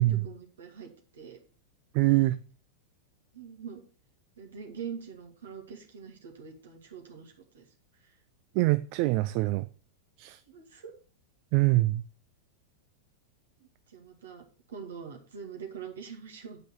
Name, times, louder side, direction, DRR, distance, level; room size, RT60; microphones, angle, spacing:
voice 1, 0.0-1.4 3.3-3.8 4.4-7.7 8.0-8.1 10.5-10.9 13.6-16.6, right 7 dB, 65° right, 2.3 m, -44 dB
voice 2, 1.9-2.4 8.6-9.6 10.2-10.4 11.5-12.0, right 19 dB, 45° right, 0.4 m, -24 dB
8.8 x 5.3 x 6.1 m
figure-of-eight pair, 90°, 0 cm